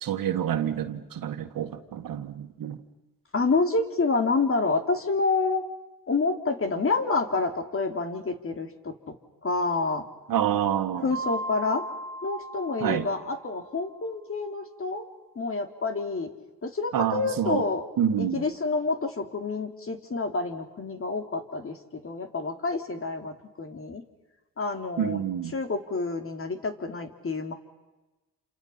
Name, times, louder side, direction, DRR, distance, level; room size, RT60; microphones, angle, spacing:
voice 1, 0.0-2.8 10.3-11.1 12.8-13.1 16.9-17.6 18.0-18.5 25.0-25.5, right 10 dB, 65° right, 7 dB, 2.0 m, -27 dB
voice 2, 3.3-5.6 6.1-9.1 9.4-10.0 11.0-11.8 12.2-15.1 15.3-16.3 16.6-17.8 18.2-24.0 24.6-25.2 25.5-27.5, left 3 dB, 35° left, 6 dB, 3.1 m, -28 dB
Mallet percussion, 11.1-13.7, right 1 dB, 60° left, 5.7 m, -37 dB
29.0 x 27.5 x 5.7 m, 1.1 s
cardioid pair, 90°, 36 cm